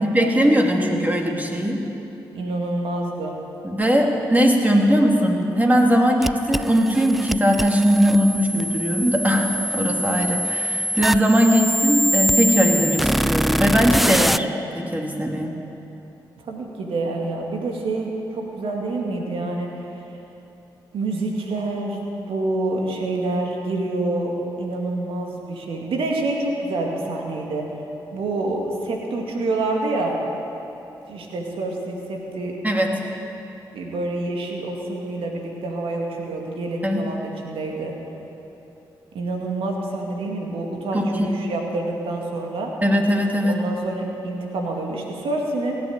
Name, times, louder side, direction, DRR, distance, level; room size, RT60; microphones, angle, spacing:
voice 1, 0.0-1.8 3.6-14.5 14.7-15.5 32.6-33.0 36.8-37.1 40.9-41.3 42.8-43.6, equal, 15° right, 1 dB, 2.7 m, -19 dB
voice 2, 2.3-3.3 16.4-19.7 20.9-27.7 28.1-30.2 31.1-32.6 33.7-38.0 39.1-42.7 43.4-45.8, right 2 dB, 80° right, 0 dB, 2.3 m, -27 dB
sound 1, 6.2-14.4, equal, ahead, 0.4 m, -24 dB
17.0 x 8.9 x 8.8 m, 3.0 s
supercardioid pair, 40°, 9 cm